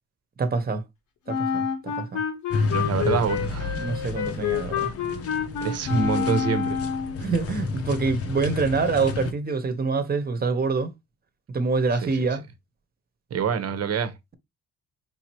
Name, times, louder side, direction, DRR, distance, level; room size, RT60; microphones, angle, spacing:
voice 1, 0.4-0.8 1.3-2.2 3.8-4.9 7.2-10.9 11.5-12.4, right 4 dB, 30° right, 1.1 m, -26 dB
Wind instrument woodwind instrument, 1.3-7.2, left 7 dB, 75° left, 1.3 m, -28 dB
sound 1, 2.5-9.3, left 4 dB, 50° left, 0.9 m, -31 dB
voice 2, 2.7-3.7 5.6-6.8 12.0-12.2 13.3-14.1, right 6 dB, 55° right, 1.0 m, -26 dB
5.2 x 2.9 x 3.1 m
cardioid pair, 90°, 30 cm